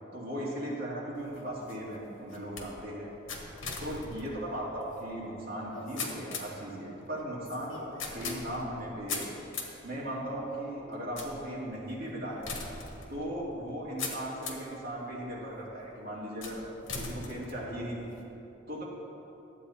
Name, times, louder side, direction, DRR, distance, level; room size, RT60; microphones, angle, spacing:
voice 1, 0.1-3.1 3.8-9.3 9.8-12.5 13.1-18.1 18.7-18.8, right 1 dB, 50° right, -6 dB, 2.5 m, -37 dB
sound 1, 1.2-14.8 15.3-15.8 16.4-18.2, left 4 dB, 85° left, 1.3 m, -42 dB
12.0 x 8.3 x 4.3 m, 2.9 s
head